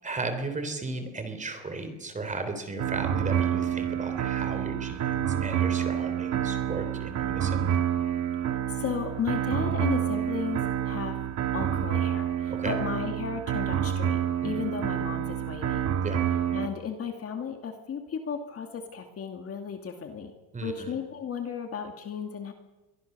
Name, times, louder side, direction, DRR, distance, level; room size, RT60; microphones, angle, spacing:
voice 1, 0.0-7.7 12.5-12.7 14.4-14.5 16.0-16.2 20.5-20.9, right 3 dB, 15° right, 8 dB, 3.6 m, -35 dB
sound 1, 2.8-16.7, right 10 dB, 35° right, 1.6 m, -28 dB
voice 2, 8.7-11.2 11.5-15.9 16.5-20.3 20.6-22.5, left 6 dB, 30° left, 5 dB, 2.3 m, -34 dB
29.0 x 24.0 x 6.8 m, 1.2 s
cardioid pair, 170°, 48 cm